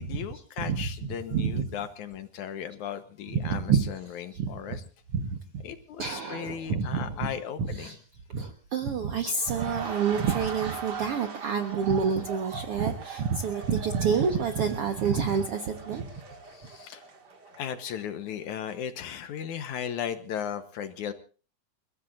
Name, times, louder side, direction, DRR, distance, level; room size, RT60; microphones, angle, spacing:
voice 1, 0.0-4.8 5.6-8.0 16.5-17.0 17.6-21.1, left 9 dB, 75° left, 9 dB, 2.5 m, -36 dB
voice 2, 1.3-1.6 3.3-4.8 5.1-5.6 6.0-7.3 7.6-8.0 8.3-16.1, right 6 dB, 55° right, 6 dB, 2.0 m, -28 dB
sound 1, 9.3-18.2 18.5-18.7, right 5 dB, 35° right, 2.3 m, -41 dB
30.0 x 15.5 x 2.6 m, 0.39 s
omnidirectional pair, 3.6 m